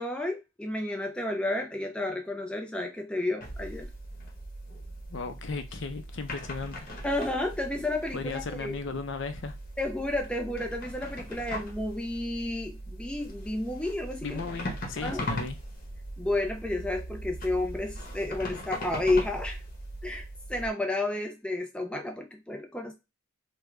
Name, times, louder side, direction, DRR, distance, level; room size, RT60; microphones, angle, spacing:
voice 1, 0.0-3.9 7.0-8.8 9.8-14.4 15.0-15.2 16.2-19.6 20.0-22.9, left 2 dB, 5° left, 3 dB, 0.4 m, -31 dB
sound 1, 3.4-20.7, equal, 40° left, 0.9 m, -39 dB
voice 2, 5.1-6.9 8.1-9.6 14.2-15.6, left 4 dB, 60° left, 9 dB, 0.5 m, -36 dB
3.6 x 2.1 x 3.1 m, 0.26 s
head